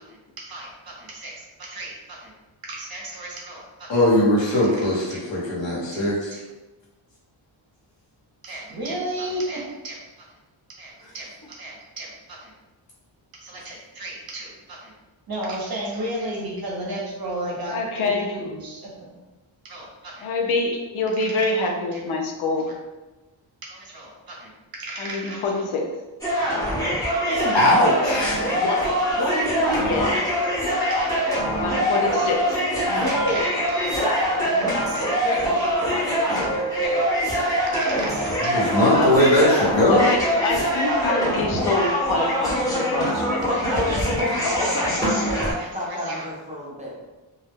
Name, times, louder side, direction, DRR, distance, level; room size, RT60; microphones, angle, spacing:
voice 1, 0.1-2.3 2.6-4.0 4.5-5.2 5.9-6.5 8.4-10.0 10.8-12.5 13.3-14.9 15.3-19.1 19.6-20.3 21.1-22.0 22.6-22.8 23.6-25.7 26.3-26.5 27.2-27.8 28.5-28.9 29.9-31.4 33.0-34.1 34.7-35.7 36.1-37.1 37.7-38.6 39.2-40.1 40.4-41.0 42.6-43.2 43.5-44.0 44.3-44.8 45.6-46.3, right 1 dB, 50° right, -2 dB, 0.7 m, -35 dB
voice 2, 3.9-6.3 27.5-28.5 38.5-40.1, left 1 dB, 65° left, -6 dB, 1.1 m, -19 dB
voice 3, 17.7-18.4 20.2-22.7 25.0-26.0 29.8-30.2 31.6-32.6 38.5-39.1 39.8-43.9, left 3 dB, 85° left, 1 dB, 0.6 m, -26 dB
sound 1, 26.2-45.5, equal, 10° left, 0.9 m, -24 dB
voice 4, 28.5-30.2 32.9-33.4 33.8-37.0 44.4-45.0, left 1 dB, 45° left, -3 dB, 0.7 m, -29 dB
voice 5, 43.5-46.9, left 1 dB, 15° right, -6 dB, 0.5 m, -31 dB
2.3 x 2.0 x 3.4 m, 1.1 s
wide cardioid pair, 135°, 47 cm